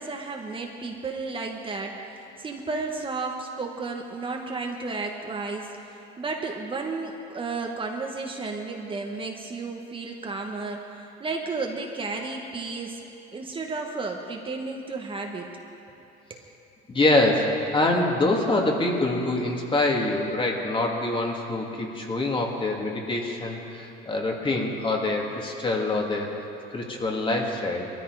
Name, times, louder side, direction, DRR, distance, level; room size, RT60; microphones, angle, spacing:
voice 1, 0.0-13.0 13.3-15.5 16.3-16.4, right 3 dB, 25° right, 1 dB, 1.4 m, -33 dB
voice 2, 16.9-26.3 26.7-27.9, left 2 dB, 25° left, 0 dB, 2.3 m, -25 dB
21.0 x 13.5 x 4.9 m, 2.9 s
cardioid pair, 110°, 21 cm